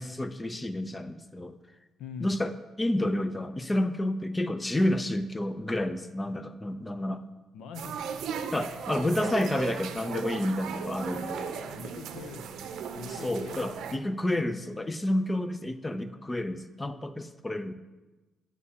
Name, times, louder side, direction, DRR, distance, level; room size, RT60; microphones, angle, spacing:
voice 1, 0.0-1.6 2.2-7.2 8.5-11.6 13.1-17.7, left 1 dB, 20° left, 11 dB, 0.6 m, -30 dB
voice 2, 2.0-2.4 7.5-8.0 11.5-14.0, left 5 dB, 85° left, 9 dB, 0.6 m, -44 dB
sound 1, 7.7-14.0, right 7 dB, 75° right, 0.6 m, -37 dB
11.5 x 8.3 x 2.9 m, 1.2 s
cardioid pair, 90°, 0 cm